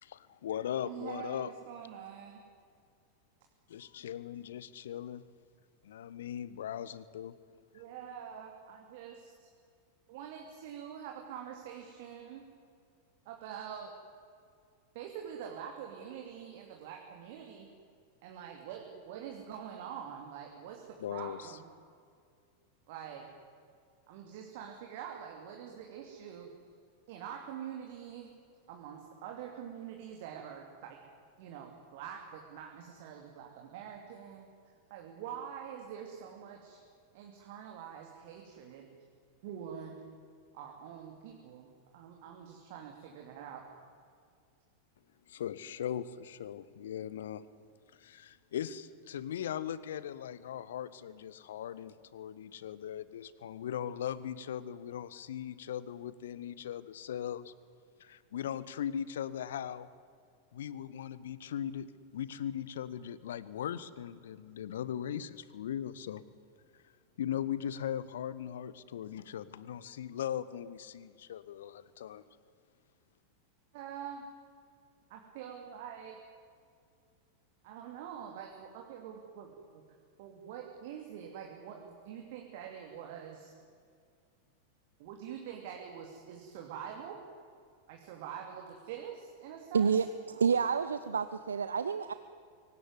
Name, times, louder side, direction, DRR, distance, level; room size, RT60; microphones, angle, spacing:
voice 1, 0.0-1.5 3.7-5.2 5.8-7.4 21.0-21.5 45.3-47.4 48.0-57.5 58.0-59.9 60.5-61.9 62.1-66.2 67.2-72.2, left 10 dB, 60° left, 17 dB, 1.1 m, -39 dB
voice 2, 0.8-2.4 7.7-9.5 10.1-12.4 13.2-13.9 14.9-17.7 18.2-20.8 21.1-21.6 22.9-23.3 24.1-26.5 27.1-28.3 28.7-31.0 31.4-34.5 34.9-36.8 37.1-38.9 39.4-40.0 40.5-43.6 73.7-74.3 75.1-76.2 77.6-79.8 80.2-83.5 85.0-87.2 87.9-89.9, right 8 dB, 50° right, 1 dB, 2.8 m, -45 dB
voice 3, 89.7-92.1, right 6 dB, 70° right, 12 dB, 0.8 m, -29 dB
23.5 x 18.0 x 9.7 m, 2.2 s
figure-of-eight pair, 90°, 0 cm